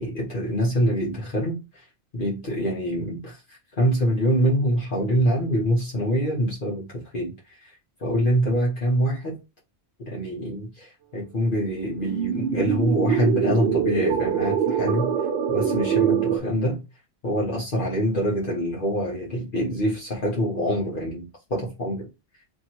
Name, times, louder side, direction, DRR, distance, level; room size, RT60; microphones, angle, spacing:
voice 1, 0.0-1.8 2.1-7.4 8.0-9.4 10.0-15.1 15.5-16.8 17.2-22.1, equal, 50° left, 1.2 m, -25 dB
sound 1, 12.0-16.4, right 8 dB, 65° right, 1.0 m, -24 dB
2.9 x 2.7 x 4.4 m
omnidirectional pair, 1.2 m